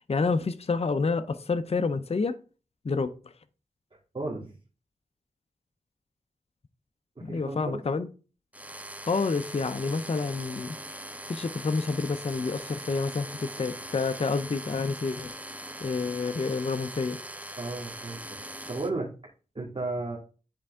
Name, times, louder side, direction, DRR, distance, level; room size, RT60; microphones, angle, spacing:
voice 1, 0.1-2.4 2.8-3.1 7.2-8.1 9.0-10.8 11.3-15.3 15.8-17.2, left 4 dB, 45° left, 0.6 m, -28 dB
voice 2, 4.1-4.5 7.2-7.8 17.6-18.4 18.7-19.1 19.5-20.2, right 2 dB, 40° right, 2.1 m, -34 dB
sound 1, 8.5-18.9, right 1 dB, 10° right, 0.6 m, -41 dB
10.5 x 4.4 x 3.6 m
wide cardioid pair, 60°, 15 cm